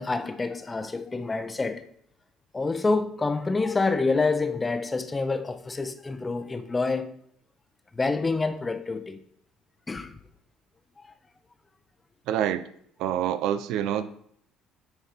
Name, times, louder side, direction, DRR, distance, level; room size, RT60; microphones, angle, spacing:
voice 1, 0.0-1.9 2.5-7.1 7.9-9.2 9.9-10.2 11.0-11.1, left 3 dB, 20° left, 0.8 m, -27 dB
voice 2, 12.3-12.6 13.0-14.0, right 10 dB, 75° right, 0.6 m, -26 dB
9.3 x 4.2 x 5.1 m
supercardioid pair, 75°, 0 cm